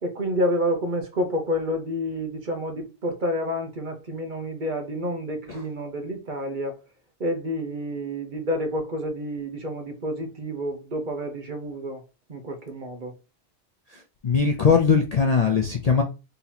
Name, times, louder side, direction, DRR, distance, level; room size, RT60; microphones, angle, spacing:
voice 1, 0.0-6.8 7.2-12.0 12.3-13.1, equal, 45° right, 1.0 m, -29 dB
voice 2, 13.9-16.0, left 5 dB, 45° left, 0.5 m, -21 dB
4.0 x 2.9 x 4.0 m
omnidirectional pair, 1.2 m